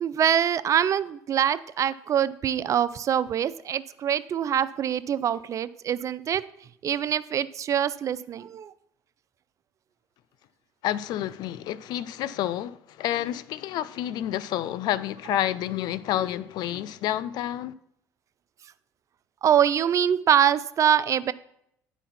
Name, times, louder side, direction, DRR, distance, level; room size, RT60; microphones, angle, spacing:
voice 1, 0.0-6.4 6.8-8.7 19.4-21.3, right 9 dB, 45° right, 0.4 m, -24 dB
voice 2, 10.8-17.7, left 12 dB, 65° left, 0.4 m, -29 dB
9.9 x 4.0 x 5.8 m
supercardioid pair, 85°, 8 cm